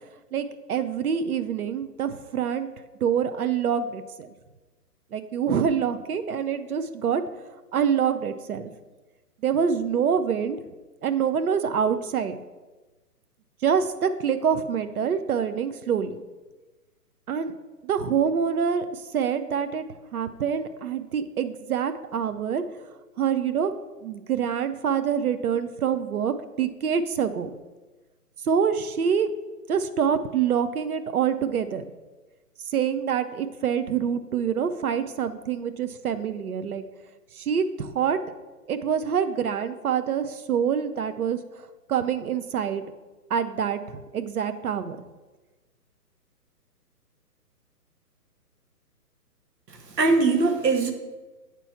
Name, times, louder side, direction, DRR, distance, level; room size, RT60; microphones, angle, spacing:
voice 1, 0.3-2.7 3.0-4.3 5.1-7.2 7.7-8.7 9.4-10.6 11.0-12.4 13.6-16.2 17.3-17.5 17.8-19.8 20.1-22.6 23.2-23.7 24.0-27.6 28.4-29.3 29.7-31.8 32.6-36.8 37.3-38.2 38.7-42.8 43.3-45.1, right 7 dB, 65° right, 11 dB, 0.6 m, -26 dB
voice 2, 49.7-50.9, right 3 dB, 90° right, 6 dB, 1.2 m, -22 dB
8.2 x 3.0 x 5.6 m, 1.2 s
hypercardioid pair, 170°, 48 cm